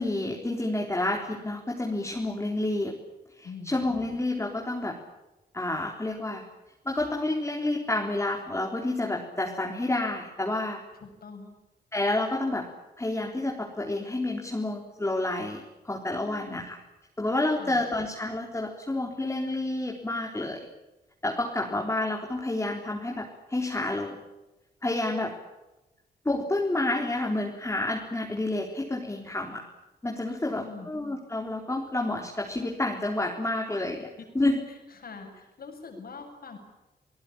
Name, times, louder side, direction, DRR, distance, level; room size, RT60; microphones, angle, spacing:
voice 1, 0.0-2.9 3.3-5.0 5.5-6.4 6.9-10.8 11.9-12.7 13.0-16.8 17.2-20.7 21.2-24.2 24.8-25.3 26.2-29.6 30.0-34.1 34.3-34.6, left 2 dB, 15° left, 0 dB, 4.0 m, -29 dB
voice 2, 3.4-3.8 11.0-11.6 16.2-16.7 17.6-17.8 30.3-30.9 35.0-36.6, left 4 dB, 60° left, 5 dB, 7.6 m, -43 dB
29.5 x 18.5 x 8.9 m, 1.0 s
cardioid pair, 95°, 17 cm